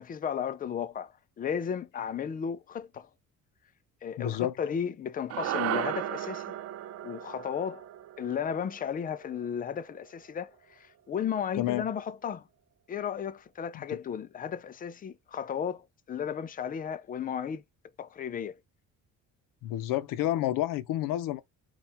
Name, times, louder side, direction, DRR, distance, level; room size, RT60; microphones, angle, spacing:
voice 1, 0.0-3.1 4.0-6.6 7.0-7.9 8.2-12.5 12.9-17.6 18.0-18.6, left 8 dB, 25° left, 0.4 m, -34 dB
voice 2, 4.2-4.5 11.5-11.8 13.7-14.0 19.6-21.4, left 13 dB, 80° left, 0.6 m, -29 dB
sound 1, 5.3-9.8, right 12 dB, 50° right, 0.4 m, -35 dB
4.2 x 2.4 x 3.3 m
cardioid pair, 125°, 32 cm